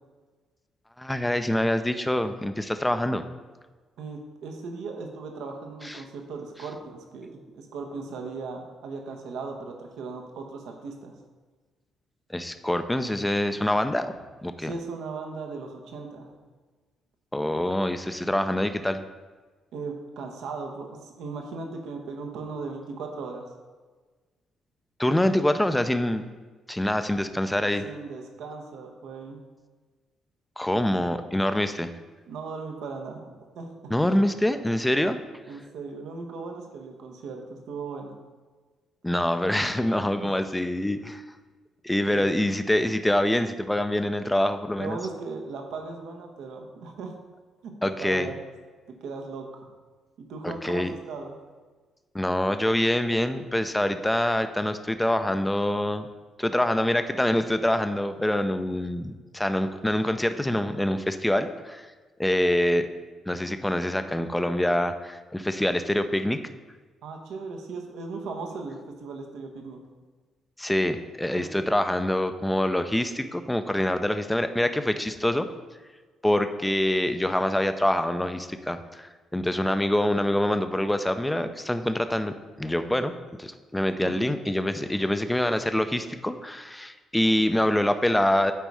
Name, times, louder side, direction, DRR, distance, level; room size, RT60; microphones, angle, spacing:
voice 1, 1.0-3.2 5.8-6.0 12.3-14.1 14.4-14.7 17.3-19.0 25.0-26.2 26.7-27.8 30.6-31.9 33.9-35.2 39.0-41.2 41.8-45.0 47.8-48.3 50.4-50.9 52.1-56.1 56.4-61.9 62.2-62.9 63.3-66.4 70.6-75.5 76.2-83.1 83.4-88.5, left 1 dB, 10° left, 9 dB, 0.5 m, -25 dB
voice 2, 4.0-11.1 14.6-16.3 19.7-23.4 27.8-29.4 32.3-33.9 35.5-38.1 40.2-40.4 42.1-42.3 44.8-47.2 47.6-48.4 49.0-49.7 50.2-51.4 67.0-69.8 71.3-71.5 84.0-84.3, right 4 dB, 85° right, 2 dB, 1.1 m, -37 dB
9.1 x 4.1 x 4.8 m, 1.4 s
cardioid pair, 90°, 0 cm